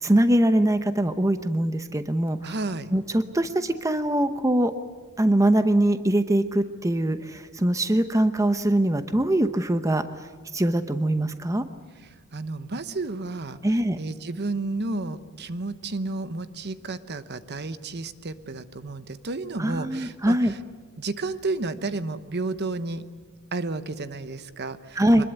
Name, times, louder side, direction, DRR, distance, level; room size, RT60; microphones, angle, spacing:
voice 1, 0.0-2.5 2.9-4.7 5.2-10.0 10.5-11.6 13.6-14.0 19.6-20.5 25.0-25.2, right 1 dB, 15° right, 9 dB, 0.8 m, -22 dB
voice 2, 2.4-2.9 12.3-13.6 14.0-20.6 21.0-23.0 23.5-25.2, right 3 dB, 50° right, 12 dB, 1.0 m, -32 dB
25.0 x 21.0 x 8.2 m, 1.5 s
head